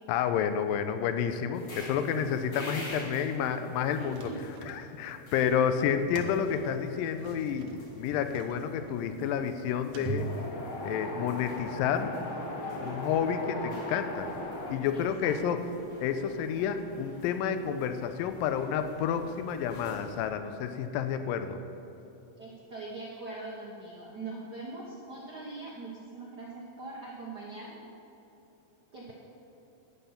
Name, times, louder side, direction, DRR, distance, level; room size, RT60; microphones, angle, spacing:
voice 1, 0.1-4.3 4.7-10.3 10.8-12.1 12.8-14.3 14.7-15.6 16.0-21.6, left 8 dB, 85° left, 9 dB, 2.3 m, -30 dB
sound 1, 1.5-20.3, equal, 45° left, 3.5 m, -49 dB
sound 2, 3.8-5.2 5.7-11.0, right 3 dB, 65° right, 1.7 m, -42 dB
voice 2, 4.0-4.4 5.5-5.6 14.9-15.3 22.4-27.8 28.9-29.1, right 3 dB, 85° right, -3 dB, 0.9 m, -42 dB
Wind, 10.2-14.7, left 1 dB, 60° left, 1.4 m, -38 dB
11.0 x 9.2 x 5.8 m, 3.0 s
omnidirectional pair, 3.9 m